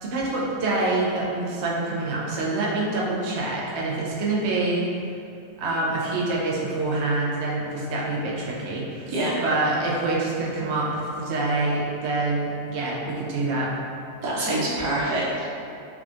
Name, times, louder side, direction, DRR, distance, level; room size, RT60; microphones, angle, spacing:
voice 1, 0.0-4.9 5.6-9.1 9.4-13.7, right 2 dB, 60° right, -5 dB, 0.8 m, -26 dB
voice 2, 14.2-15.4, right 1 dB, 90° right, -7 dB, 1.3 m, -25 dB
3.6 x 3.5 x 2.4 m, 2.6 s
omnidirectional pair, 1.6 m